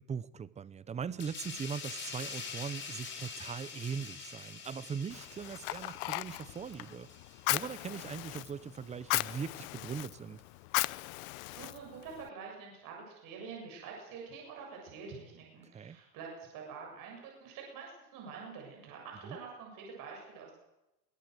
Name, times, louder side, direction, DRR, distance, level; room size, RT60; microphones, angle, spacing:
voice 1, 0.0-7.1 7.5-10.4 15.7-16.0 19.2-19.4, right 6 dB, 15° right, 18 dB, 0.7 m, -40 dB
sound 1, 1.2-8.4 8.7-8.9, left 5 dB, 25° left, 4.8 m, -46 dB
Fire, 5.1-12.3, left 24 dB, 65° left, 0.7 m, -37 dB
voice 2, 11.5-20.6, right 5 dB, 45° right, -1 dB, 7.3 m, -46 dB
22.0 x 18.0 x 7.9 m, 0.96 s
supercardioid pair, 135°, 45 cm